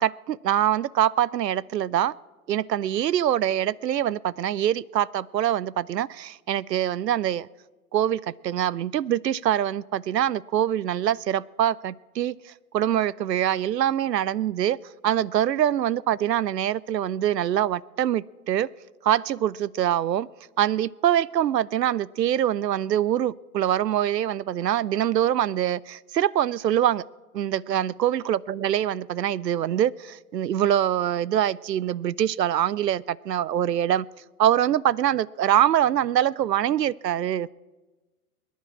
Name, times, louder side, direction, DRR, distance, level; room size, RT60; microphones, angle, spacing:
voice 1, 0.0-2.1 2.5-7.5 7.9-12.3 12.7-14.8 15.0-18.7 19.0-20.3 20.6-27.0 27.3-34.0 34.4-37.5, right 11 dB, 90° right, 23 dB, 0.6 m, -24 dB
22.5 x 10.5 x 6.0 m, 1.2 s
hypercardioid pair, 115°, 48 cm